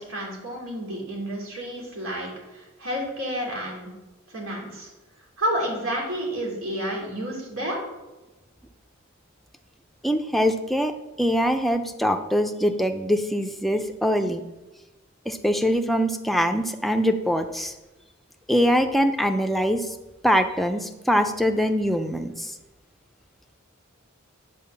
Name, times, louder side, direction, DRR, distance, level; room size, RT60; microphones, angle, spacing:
voice 1, 0.0-3.9 4.3-4.9 5.4-7.8, equal, 85° right, -1 dB, 2.9 m, -30 dB
voice 2, 10.0-10.9 11.2-14.4 15.3-17.7 18.5-19.9 20.2-22.5, equal, ahead, 6 dB, 0.5 m, -23 dB
8.5 x 4.6 x 6.9 m, 1.1 s
head